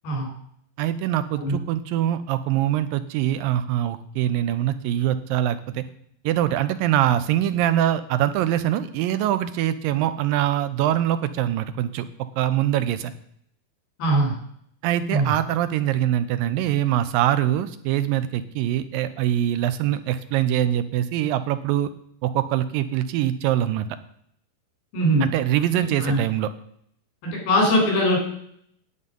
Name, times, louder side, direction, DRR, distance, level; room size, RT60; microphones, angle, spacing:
voice 1, 0.8-5.8 6.2-12.1 12.4-13.1 14.8-21.9 22.2-23.9 25.2-26.5, right 12 dB, 80° right, 12 dB, 2.3 m, -23 dB
voice 2, 14.0-14.3 15.1-15.3 24.9-25.3 26.0-26.2 27.2-28.2, equal, 80° left, 0 dB, 5.8 m, -21 dB
9.6 x 8.5 x 5.3 m, 0.68 s
omnidirectional pair, 4.2 m